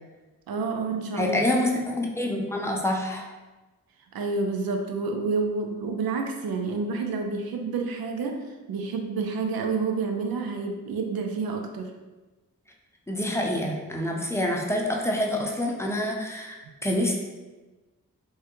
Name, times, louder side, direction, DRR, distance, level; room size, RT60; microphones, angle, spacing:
voice 1, 0.5-1.4 4.1-11.9, right 4 dB, 80° right, 4 dB, 0.5 m, -29 dB
voice 2, 1.2-3.2 13.1-17.1, left 1 dB, 5° left, -1 dB, 0.6 m, -27 dB
3.4 x 2.2 x 3.0 m, 1.2 s
cardioid pair, 40°, 36 cm